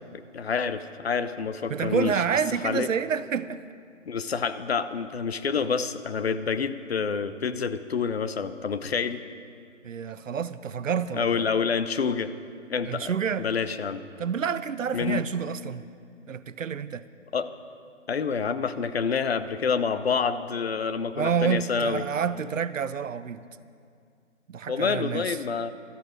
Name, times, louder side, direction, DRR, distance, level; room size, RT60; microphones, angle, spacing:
voice 1, 0.1-2.2 2.6-2.9 4.1-9.2 11.1-12.3 12.7-14.0 14.9-15.2 17.3-17.5 18.1-22.0 24.7-25.7, left 5 dB, 55° left, 12 dB, 0.8 m, -28 dB
voice 2, 1.7-3.6 9.8-11.5 12.8-13.5 14.2-15.8 16.3-17.0 21.2-23.4 24.5-25.4, right 7 dB, 90° right, 15 dB, 0.7 m, -28 dB
16.5 x 13.0 x 5.1 m, 2.4 s
hypercardioid pair, 160°, 38 cm